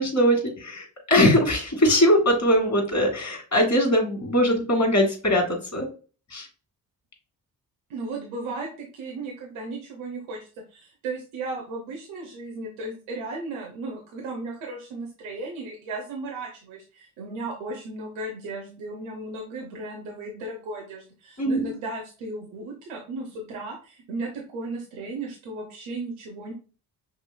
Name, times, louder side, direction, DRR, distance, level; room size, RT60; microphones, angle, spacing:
voice 1, 0.0-5.9 6.3-6.5 21.4-21.7, equal, 35° left, 2 dB, 2.3 m, -21 dB
voice 2, 7.9-10.4 10.7-26.5, right 2 dB, 85° right, 0 dB, 1.0 m, -35 dB
6.0 x 3.1 x 2.3 m, 0.35 s
hypercardioid pair, 40°, 45 cm